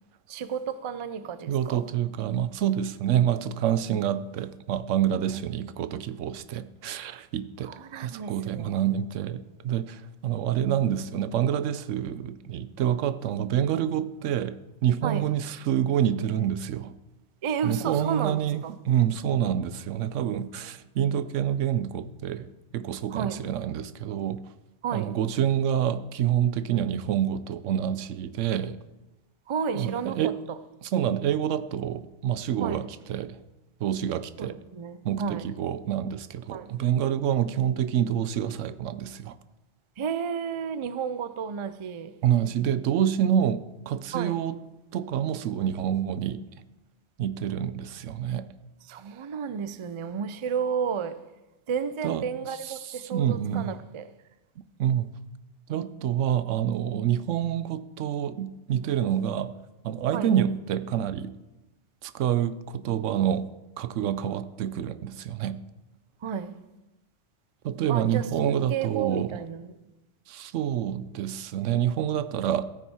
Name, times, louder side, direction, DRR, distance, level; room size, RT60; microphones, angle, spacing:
voice 1, 0.3-1.8 5.3-5.4 7.6-8.8 15.0-15.3 17.4-18.4 18.6-18.7 23.1-23.5 24.8-25.2 29.5-30.6 32.6-32.9 34.4-35.4 36.5-36.8 40.0-42.2 44.1-44.4 48.8-51.2 51.7-54.1 60.1-60.3 66.2-66.6 67.9-69.7, right 7 dB, 50° right, 0.3 m, -32 dB
voice 2, 1.5-16.9 17.6-24.4 24.9-28.8 29.7-30.3 30.8-33.4 33.8-34.6 35.0-39.4 42.2-44.6 44.9-46.6 47.2-48.5 52.0-52.3 52.6-53.7 54.8-55.1 55.7-59.5 59.8-61.3 62.0-63.5 63.8-65.6 67.6-69.4 70.3-72.6, right 10 dB, 90° right, 1.0 m, -27 dB
14.0 x 9.2 x 4.3 m
omnidirectional pair, 1.2 m